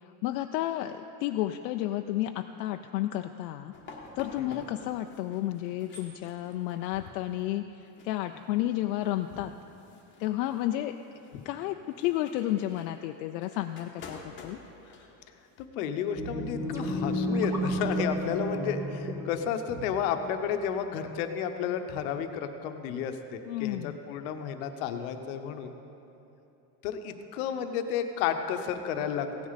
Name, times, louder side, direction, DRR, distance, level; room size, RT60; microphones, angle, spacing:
voice 1, 0.2-3.7 4.2-9.5 10.2-11.0 11.4-14.6 23.5-24.0, left 14 dB, 80° left, 6 dB, 0.6 m, -31 dB
sound 1, 3.7-15.6, left 3 dB, 25° left, 1.1 m, -50 dB
voice 2, 15.6-25.8 26.8-29.5, left 8 dB, 60° left, 7 dB, 1.0 m, -32 dB
sound 2, 16.2-20.4, equal, 5° right, 0.4 m, -32 dB
16.0 x 9.5 x 4.1 m, 2.9 s
supercardioid pair, 160°, 49 cm